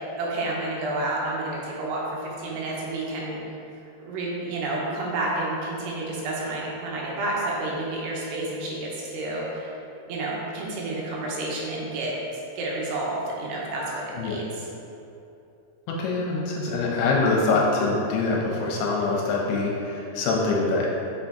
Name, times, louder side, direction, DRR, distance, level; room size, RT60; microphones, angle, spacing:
voice 1, 0.2-3.4 4.0-9.8 10.1-14.4, right 2 dB, 80° right, -4 dB, 2.9 m, -30 dB
voice 2, 15.9-20.9, left 3 dB, 80° left, -2 dB, 2.6 m, -24 dB
6.6 x 5.8 x 2.8 m, 2.8 s
omnidirectional pair, 4.9 m